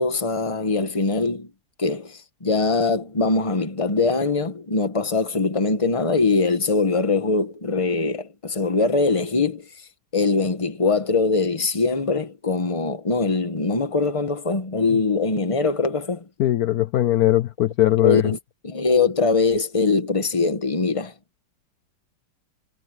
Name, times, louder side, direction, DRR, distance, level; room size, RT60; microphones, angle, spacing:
voice 1, 0.0-1.5 1.8-9.7 10.1-16.2 18.0-18.4 18.6-21.1, left 4 dB, 20° left, 1.2 m, -22 dB
voice 2, 16.4-18.3, left 14 dB, 75° left, 0.8 m, -20 dB
omnidirectional pair, 2.4 m